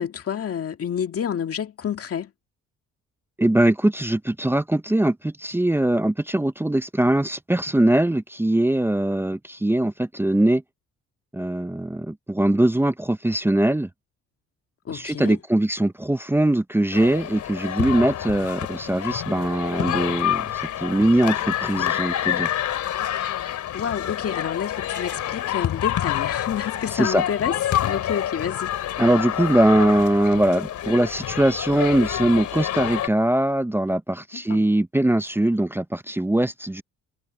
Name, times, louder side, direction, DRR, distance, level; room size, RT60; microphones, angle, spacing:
voice 1, 0.0-2.3 14.9-15.4 23.2-23.3 23.7-27.5 27.8-28.7 34.3-34.6, left 8 dB, 50° left, 2.1 m, -29 dB
voice 2, 3.4-10.6 11.3-13.9 14.9-22.5 26.9-27.2 29.0-36.8, right 1 dB, 5° right, 0.6 m, -21 dB
sound 1, 16.9-33.1, left 11 dB, 75° left, 2.6 m, -27 dB
cardioid pair, 90°, 30 cm